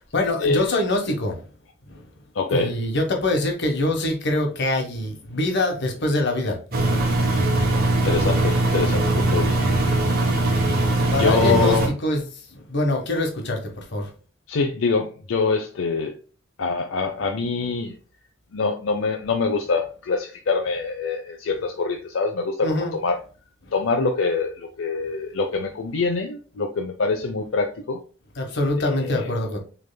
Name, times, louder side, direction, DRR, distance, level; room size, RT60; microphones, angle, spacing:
voice 1, 0.1-1.4 1.9-2.0 2.5-7.0 11.1-14.1 22.6-22.9 23.6-23.7 28.4-29.6, left 1 dB, 60° left, 1.3 m, -24 dB
voice 2, 2.3-2.7 8.0-9.7 11.2-11.9 14.5-16.1 16.6-17.9 18.5-23.2 23.7-28.0 28.8-29.3, left 4 dB, 80° left, 0.6 m, -24 dB
Engine, 6.7-11.9, right 2 dB, 50° right, 1.4 m, -21 dB
6.6 x 3.5 x 2.2 m
head